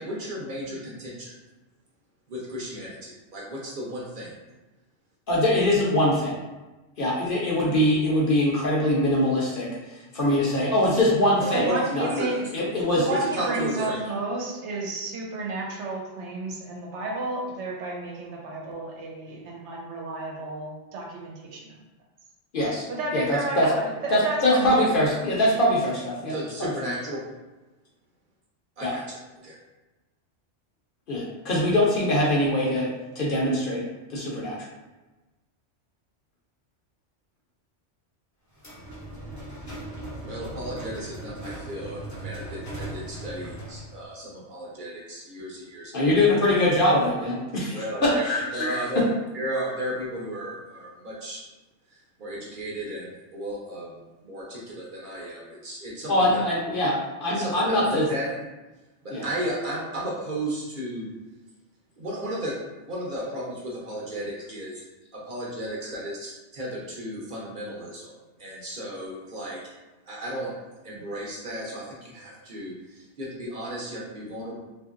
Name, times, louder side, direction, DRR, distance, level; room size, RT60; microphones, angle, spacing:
voice 1, 0.0-1.3 2.3-4.3 11.4-12.3 13.1-14.0 26.3-27.2 28.8-29.6 40.2-46.0 47.7-49.0 49.3-51.4 51.9-56.4 57.3-58.3 59.0-61.1 62.0-62.6 62.8-64.8 65.1-68.1 68.4-69.6 70.1-70.5 70.8-74.6, right 1 dB, 50° right, -4 dB, 0.7 m, -34 dB
voice 2, 5.3-6.4 7.0-11.7 11.9-12.1 12.5-13.1 22.5-22.8 23.1-23.7 24.1-26.3 26.6-26.7 28.8-28.9 31.1-32.9 33.2-34.6 45.9-48.8 56.1-58.1 59.1-59.2, left 1 dB, 55° left, -4 dB, 0.7 m, -23 dB
voice 3, 11.5-12.3 12.9-21.8 22.9-24.8, right 2 dB, 75° right, -2 dB, 0.9 m, -31 dB
sound 1, 38.5-44.0, right 1 dB, 25° left, 0.4 m, -38 dB
2.8 x 2.5 x 2.4 m, 1.1 s
omnidirectional pair, 1.2 m